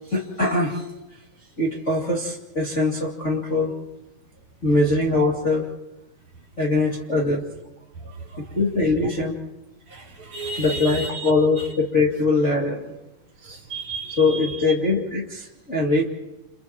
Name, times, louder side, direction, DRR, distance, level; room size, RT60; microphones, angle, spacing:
voice 1, 0.1-0.8 1.6-3.7 4.6-5.6 6.6-7.4 8.5-9.4 10.6-12.9 14.2-16.0, left 2 dB, 25° left, -3 dB, 2.1 m, -22 dB
voice 2, 8.0-8.6 9.9-11.7 13.4-14.7, right 4 dB, 55° right, 0 dB, 3.1 m, -34 dB
30.0 x 29.5 x 3.0 m, 0.98 s
omnidirectional pair, 4.2 m